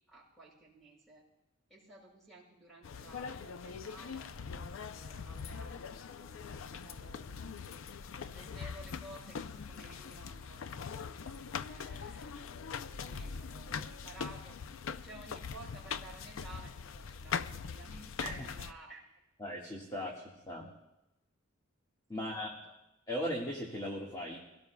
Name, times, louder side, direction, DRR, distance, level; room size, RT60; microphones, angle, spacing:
voice 1, 0.1-1.2 1.7-7.8 8.3-14.7 15.0-19.0 19.9-20.1 22.1-22.5, right 2 dB, ahead, -4 dB, 5.7 m, -54 dB
sound 1, 2.8-18.7, left 6 dB, 80° left, 0.5 m, -42 dB
voice 2, 19.4-20.1 20.5-20.7 22.1-22.5 23.1-24.4, equal, 20° left, -3 dB, 1.7 m, -37 dB
24.0 x 17.5 x 2.3 m, 0.92 s
head